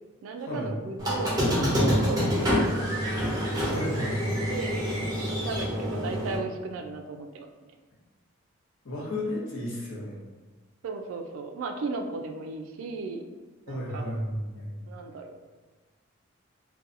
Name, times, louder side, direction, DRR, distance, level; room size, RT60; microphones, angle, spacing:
voice 1, 0.2-2.5 4.3-4.8 5.3-7.7 10.8-13.2 13.7-14.1 14.8-15.4, right 3 dB, 75° right, 4 dB, 0.3 m, -36 dB
Squeak, 1.0-6.4, equal, 15° right, 0.5 m, -27 dB
voice 2, 3.6-4.4 8.8-10.2 13.7-14.7, left 1 dB, 60° left, -5 dB, 0.7 m, -33 dB
2.7 x 2.2 x 2.5 m, 1.3 s
head